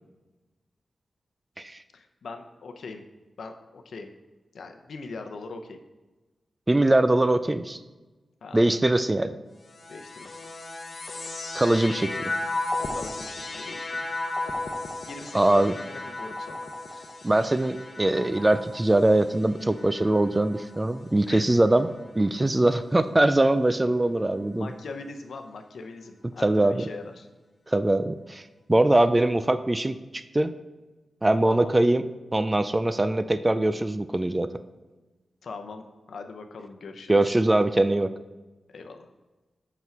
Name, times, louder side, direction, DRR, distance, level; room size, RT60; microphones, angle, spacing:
voice 1, 1.9-3.0 3.4-4.1 4.5-5.8 8.4-8.7 9.9-10.3 12.9-14.1 15.0-16.7 21.3-21.5 24.5-27.3 31.5-31.7 35.4-37.4 38.7-39.1, left 3 dB, 80° left, 6 dB, 0.7 m, -41 dB
voice 2, 6.7-7.8 8.5-9.3 11.6-12.3 15.3-15.7 17.2-21.9 22.2-24.7 26.4-26.8 27.7-28.4 28.7-30.5 31.2-32.1 32.3-34.5 37.1-38.1, right 1 dB, 20° right, 11 dB, 0.3 m, -22 dB
sound 1, 9.6-21.1 21.9-22.6, left 2 dB, 45° left, 0.8 m, -35 dB
6.1 x 5.7 x 4.5 m, 1.2 s
wide cardioid pair, 100°, 0 cm